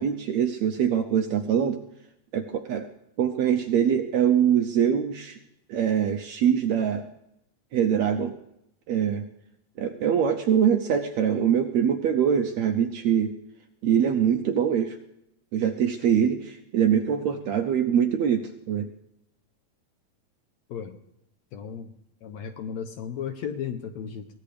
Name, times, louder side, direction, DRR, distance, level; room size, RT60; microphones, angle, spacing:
voice 1, 0.0-1.8 2.3-2.9 3.2-5.4 5.7-7.1 7.7-8.4 8.9-9.2 9.8-13.3 13.8-15.0 15.5-18.9, right 8 dB, 75° right, 5 dB, 1.7 m, -23 dB
voice 2, 21.5-21.9 22.2-24.3, left 7 dB, 70° left, 7 dB, 1.8 m, -34 dB
22.5 x 17.5 x 3.4 m, 0.81 s
omnidirectional pair, 3.8 m